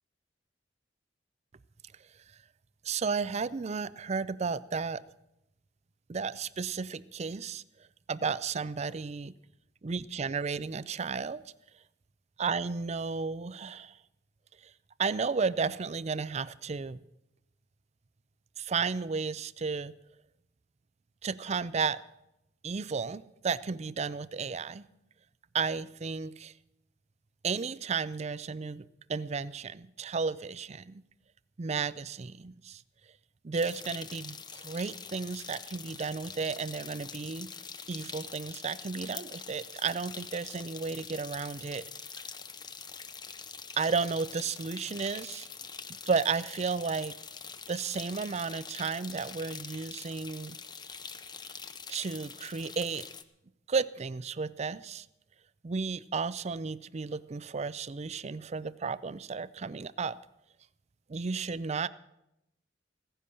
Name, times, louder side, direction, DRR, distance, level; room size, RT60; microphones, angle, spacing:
voice 1, 2.8-5.0 6.1-7.6 8.1-9.3 9.8-11.4 12.4-14.0 15.0-17.0 18.6-19.9 21.2-22.0 22.6-24.8 25.5-26.5 27.4-31.0 31.6-32.8 33.4-37.5 37.9-41.8 43.8-45.5 46.1-47.1 47.7-50.6 51.9-53.1 53.7-55.1 55.6-60.2 61.1-61.9, right 5 dB, 35° right, 18 dB, 0.5 m, -33 dB
sound 1, 33.5-53.2, left 6 dB, 25° left, 0.7 m, -44 dB
16.0 x 10.0 x 6.9 m, 0.87 s
head